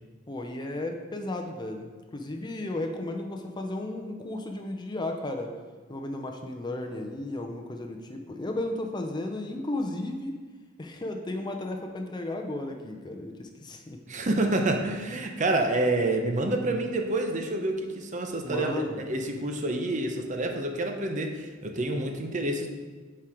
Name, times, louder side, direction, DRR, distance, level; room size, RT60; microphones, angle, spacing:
voice 1, 0.3-5.5 5.9-10.3 10.8-14.0 15.5-15.6 18.4-19.1, left 1 dB, 25° left, 3 dB, 0.6 m, -34 dB
voice 2, 14.1-22.7, right 2 dB, 40° right, 4 dB, 0.7 m, -28 dB
7.3 x 4.5 x 4.9 m, 1.4 s
head